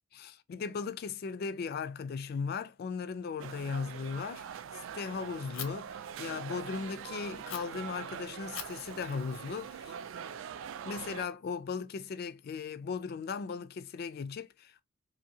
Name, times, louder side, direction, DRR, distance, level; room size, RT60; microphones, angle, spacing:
voice 1, 0.1-4.6 4.9-10.0 10.8-14.8, left 5 dB, 50° left, 0.3 m, -37 dB
sound 1, 3.4-11.3, right 8 dB, 75° right, 0.3 m, -43 dB
Fire, 5.5-5.7 7.5-7.6 8.5-10.5, left 8 dB, 80° left, 0.7 m, -45 dB
2.7 x 2.6 x 2.7 m
head